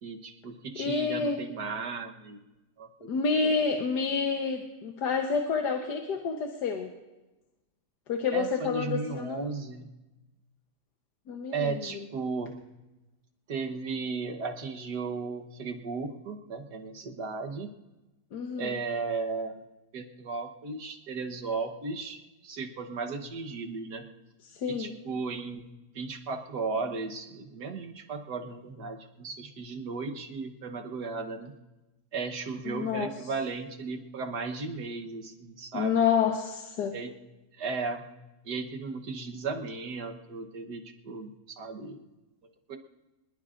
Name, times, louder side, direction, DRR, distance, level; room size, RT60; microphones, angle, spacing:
voice 1, 0.0-2.4 2.8-3.5 8.3-9.9 11.5-12.5 13.5-17.7 18.5-19.6 19.9-24.0 24.7-25.7 25.9-31.5 32.1-35.9 36.9-37.1 37.5-38.1 38.4-42.0 42.7-42.8, right 4 dB, 75° right, 4 dB, 1.8 m, -35 dB
voice 2, 0.8-1.4 3.1-6.9 8.1-9.5 11.3-11.8 18.3-18.7 24.4-24.9 32.6-33.1 35.7-36.9, left 5 dB, 80° left, 3 dB, 1.7 m, -28 dB
24.0 x 21.0 x 2.5 m, 1.0 s
omnidirectional pair, 1.8 m